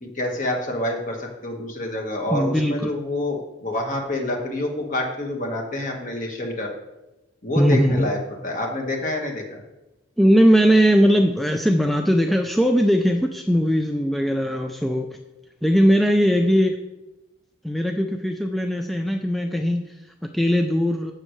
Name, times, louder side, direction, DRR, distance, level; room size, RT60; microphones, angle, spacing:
voice 1, 0.0-6.7 7.4-9.6, left 1 dB, 40° left, 1 dB, 1.5 m, -27 dB
voice 2, 2.3-2.9 7.6-8.1 10.2-15.2 15.6-16.8 17.6-21.1, equal, ahead, 3 dB, 0.4 m, -19 dB
15.0 x 6.4 x 3.2 m, 1.0 s
head